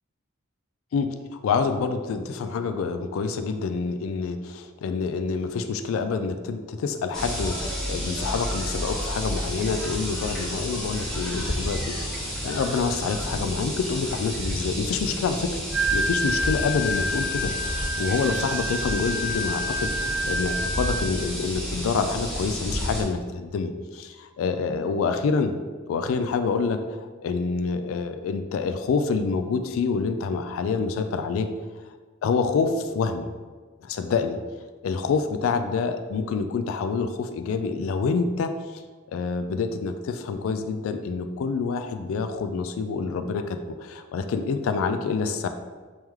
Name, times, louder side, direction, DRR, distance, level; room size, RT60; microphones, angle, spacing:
voice 1, 1.4-15.6 15.9-25.5 25.9-31.5 32.2-33.3 33.8-34.4 34.8-38.8 39.1-45.5, left 5 dB, 75° left, 9 dB, 0.3 m, -27 dB
sound 1, 7.1-23.0, equal, 5° left, 1.1 m, -31 dB
Wind instrument woodwind instrument, 15.7-21.2, equal, 75° right, 0.5 m, -28 dB
3.1 x 3.0 x 3.6 m, 1.4 s
head